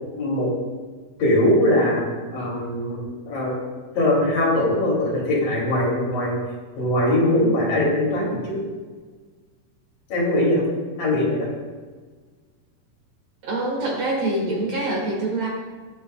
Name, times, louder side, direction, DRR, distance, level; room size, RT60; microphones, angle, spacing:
voice 1, 0.2-0.5 1.2-2.0 2.3-3.0 3.3-3.6 3.9-6.4 6.8-8.6 10.1-10.7 11.0-11.5, left 1 dB, 70° left, -4 dB, 4.2 m, -21 dB
voice 2, 13.4-15.5, right 2 dB, 55° right, -2 dB, 2.2 m, -25 dB
20.0 x 6.7 x 2.3 m, 1.4 s
omnidirectional pair, 4.1 m